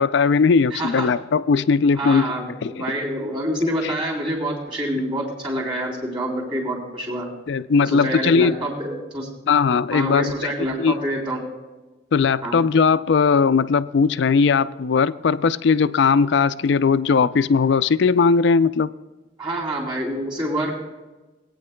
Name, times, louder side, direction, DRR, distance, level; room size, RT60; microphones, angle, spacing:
voice 1, 0.0-2.3 2.6-2.8 3.8-3.9 7.5-8.6 9.5-10.3 10.8-11.0 12.1-18.9, left 5 dB, 60° left, 14 dB, 0.3 m, -18 dB
voice 2, 0.7-1.1 1.9-7.3 7.8-9.3 9.9-11.4 12.4-12.6 19.4-20.7, right 1 dB, 25° right, -1 dB, 3.2 m, -27 dB
21.0 x 9.1 x 2.2 m, 1.2 s
head